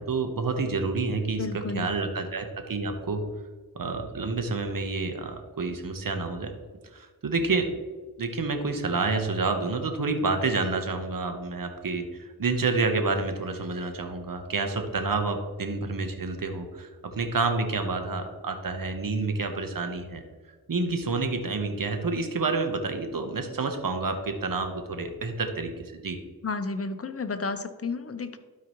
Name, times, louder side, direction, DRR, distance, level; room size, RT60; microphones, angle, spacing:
voice 1, 0.0-3.2 3.7-6.5 6.9-7.7 8.2-20.2 20.7-26.2, right 3 dB, 60° right, 6 dB, 1.1 m, -29 dB
voice 2, 1.4-1.9 26.4-28.4, left 4 dB, 40° left, 9 dB, 0.8 m, -32 dB
12.5 x 4.8 x 3.1 m, 1.4 s
cardioid pair, 50°, 38 cm